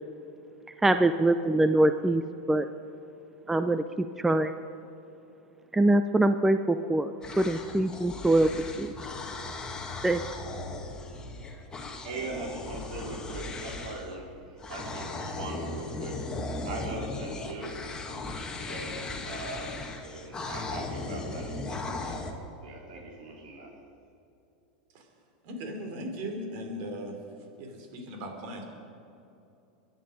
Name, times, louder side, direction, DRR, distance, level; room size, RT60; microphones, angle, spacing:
voice 1, 0.8-2.2 2.5-2.7 3.5-4.6 5.7-8.5 8.8-8.9 10.0-10.2, right 1 dB, 5° right, 9 dB, 0.5 m, -24 dB
sound 1, 7.2-14.2 14.6-22.3, left 2 dB, 15° left, 1.9 m, -37 dB
voice 2, 12.0-16.2 16.6-17.8 18.6-22.3 22.6-23.7, right 2 dB, 75° right, -1 dB, 4.0 m, -40 dB
voice 3, 25.4-27.1 27.6-28.6, equal, 55° right, 3 dB, 3.7 m, -38 dB
23.5 x 10.5 x 5.2 m, 2.8 s
hypercardioid pair, 115°, 4 cm